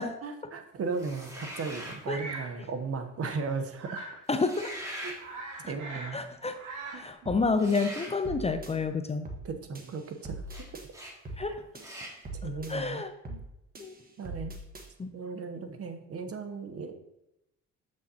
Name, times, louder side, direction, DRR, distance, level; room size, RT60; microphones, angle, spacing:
voice 1, 0.2-4.2 5.0-5.1 5.7-6.2 6.9-7.0 9.4-10.8 11.5-11.6 12.4-13.4 14.2-14.5 15.1-16.9, right 4 dB, 50° right, 7 dB, 0.9 m, -36 dB
sound 1, 0.9-2.0 4.3-5.2 7.5-8.2 10.5-10.6 10.9-11.1 11.8-12.2, equal, 10° right, 2.1 m, -41 dB
Bird vocalization bird call bird song, 2.0-2.5 3.8-4.2 4.7-4.8 5.0-6.2 6.5-7.1, right 3 dB, 85° right, 1.9 m, -41 dB
voice 2, 4.3-4.7 5.6-5.7 6.1-6.6 6.9-9.3 11.4-11.6 12.7-13.1 13.8-13.9 15.0-15.1, left 4 dB, 20° left, 9 dB, 0.5 m, -29 dB
sound 2, 7.3-7.5 7.8-8.7 9.3-9.5 9.8-10.9 11.3-11.5 11.8-12.7 13.3-13.5 13.8-14.9, right 1 dB, 30° right, 1.3 m, -42 dB
7.4 x 6.3 x 2.8 m, 0.87 s
cardioid pair, 90°, 30 cm